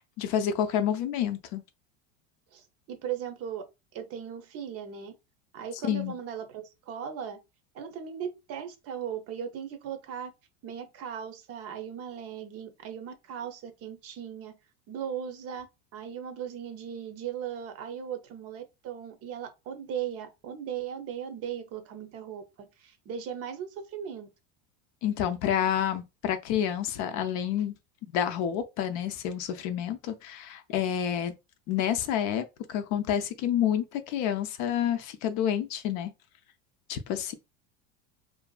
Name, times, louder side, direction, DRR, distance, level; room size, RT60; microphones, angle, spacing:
voice 1, 0.0-1.6 5.9-6.1 25.0-27.7 28.1-31.3 31.7-36.1 36.9-37.3, left 9 dB, 55° left, 0.5 m, -29 dB
voice 2, 2.5-3.6 3.9-5.1 5.5-7.4 7.7-10.3 10.6-14.6 14.9-15.7 15.9-24.3, right 8 dB, 45° right, 0.6 m, -38 dB
2.6 x 2.4 x 2.2 m
supercardioid pair, 120°, 35 cm